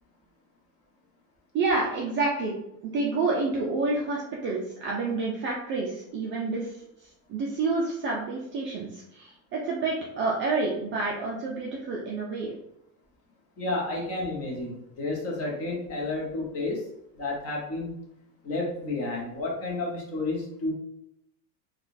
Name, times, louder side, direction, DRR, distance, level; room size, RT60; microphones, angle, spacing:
voice 1, 1.5-2.5 2.8-6.8 7.3-12.5, right 3 dB, 30° right, -3 dB, 0.4 m, -28 dB
voice 2, 13.6-16.8 17.2-17.9 18.4-20.7, left 2 dB, 30° left, -2 dB, 1.0 m, -31 dB
3.6 x 2.4 x 2.5 m, 0.78 s
supercardioid pair, 135°, 46 cm